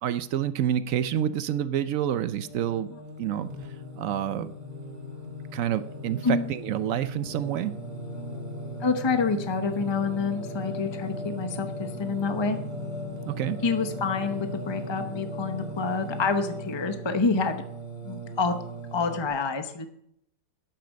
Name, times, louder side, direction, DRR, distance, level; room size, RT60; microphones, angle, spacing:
voice 1, 0.0-2.9 3.2-3.5 4.0-4.5 5.5-7.8 13.3-13.6, right 10 dB, 70° right, 14 dB, 0.8 m, -28 dB
Singing, 2.1-19.3, equal, 25° right, 2.1 m, -37 dB
voice 2, 8.8-12.6 13.6-17.6 18.0-18.6 18.9-19.9, left 4 dB, 35° left, 8 dB, 0.4 m, -27 dB
10.0 x 9.0 x 6.3 m, 0.73 s
omnidirectional pair, 1.9 m